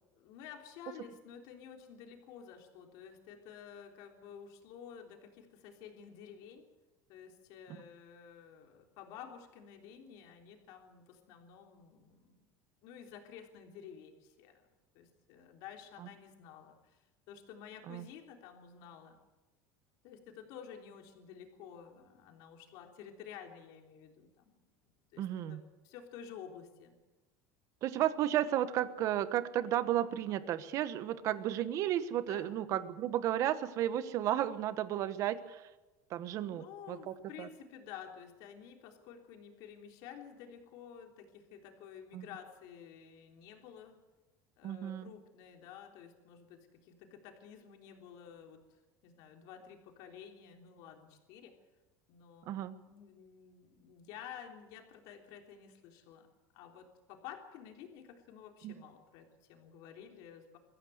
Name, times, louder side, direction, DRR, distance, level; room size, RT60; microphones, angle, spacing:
voice 1, 0.2-6.7 7.1-12.5 12.8-14.7 14.9-19.2 20.0-24.7 25.1-27.0 32.2-32.6 36.4-44.0 44.6-48.6 49.0-51.6 52.1-56.3 56.5-60.6, left 8 dB, 60° left, 3 dB, 3.6 m, -52 dB
voice 2, 25.2-25.6 27.8-35.6 36.1-37.5 42.1-42.3 44.6-45.1 52.5-52.8 58.6-58.7, right 12 dB, 45° right, 13 dB, 1.2 m, -33 dB
22.5 x 15.0 x 8.0 m, 1.1 s
cardioid pair, 160°, 8 cm